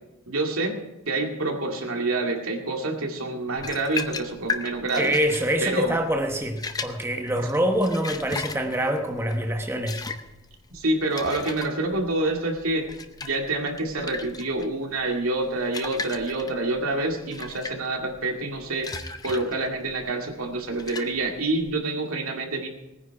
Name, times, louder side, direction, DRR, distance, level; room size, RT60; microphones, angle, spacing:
voice 1, 0.3-0.8 1.1-5.2 5.6-6.0 10.7-12.9 13.2-22.7, right 2 dB, 85° right, 2.3 m, -27 dB
sound 1, 3.5-21.7, left 4 dB, 20° left, 0.6 m, -37 dB
voice 2, 4.9-10.1, right 1 dB, 10° right, 1.0 m, -25 dB
19.0 x 9.8 x 4.8 m
head